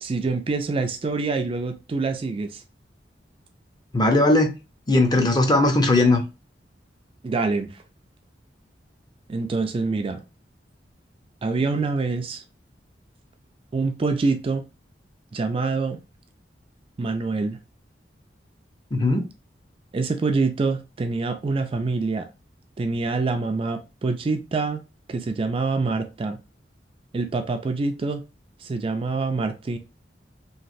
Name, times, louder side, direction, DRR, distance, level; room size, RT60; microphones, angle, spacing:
voice 1, 0.0-2.6 7.2-7.7 9.3-10.2 11.4-12.4 13.7-14.6 15.3-16.0 17.0-17.6 19.9-22.3 22.8-24.8 25.1-26.4 27.1-28.2 28.6-29.8, right 3 dB, 30° right, 0.3 m, -25 dB
voice 2, 3.9-4.5 4.9-6.2 18.9-19.2, left 2 dB, 25° left, 0.6 m, -18 dB
3.0 x 2.4 x 2.5 m
head